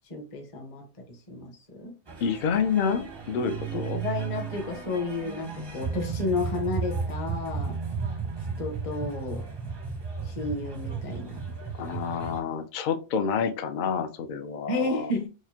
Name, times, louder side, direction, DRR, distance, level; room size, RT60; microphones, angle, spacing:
voice 1, 0.1-1.9 3.7-7.8 8.6-9.4 10.2-11.4 14.7-15.3, left 2 dB, 35° left, 0.8 m, -32 dB
sound 1, 2.1-12.4, right 5 dB, 30° right, 0.5 m, -34 dB
voice 2, 2.2-4.0 11.7-15.1, left 6 dB, 55° left, 0.6 m, -28 dB
4.8 x 2.1 x 2.7 m
omnidirectional pair, 1.2 m